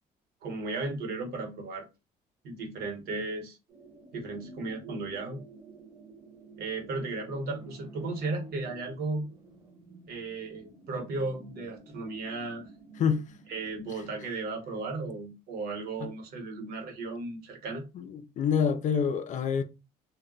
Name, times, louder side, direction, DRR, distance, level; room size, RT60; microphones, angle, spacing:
voice 1, 0.4-1.9 2.4-3.6 4.1-5.4 6.6-9.2 10.1-12.7 13.5-17.9, right 3 dB, 65° right, 1.1 m, -35 dB
sound 1, 3.7-13.8, right 3 dB, 20° right, 0.8 m, -51 dB
voice 2, 13.0-13.3 13.9-14.0 16.0-16.1 17.9-19.6, left 7 dB, 45° left, 0.4 m, -27 dB
2.2 x 2.1 x 3.8 m
cardioid pair, 110°, 17 cm